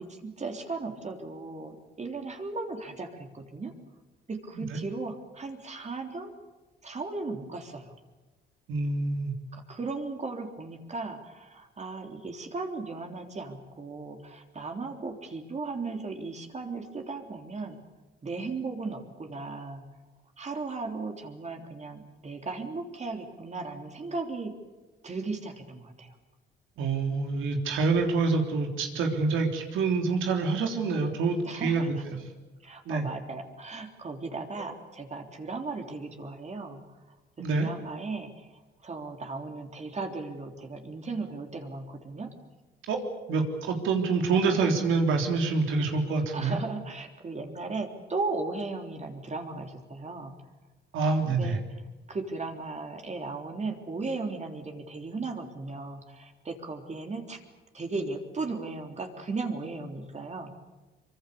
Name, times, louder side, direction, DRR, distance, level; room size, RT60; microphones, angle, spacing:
voice 1, 0.0-3.7 4.3-6.3 6.8-7.9 9.5-17.8 18.2-19.9 20.4-24.5 25.0-26.2 31.5-32.2 32.6-36.8 37.4-38.5 38.8-42.3 46.3-50.3 51.3-51.6 52.1-57.4 57.7-60.5, right 3 dB, 35° right, 3 dB, 3.4 m, -36 dB
voice 2, 8.7-9.3 26.8-32.0 32.9-33.1 37.4-37.7 42.9-43.0 43.3-46.6 50.9-51.6, right 4 dB, 85° right, 3 dB, 3.6 m, -26 dB
24.5 x 23.5 x 7.0 m, 1.2 s
cardioid pair, 90°, 20 cm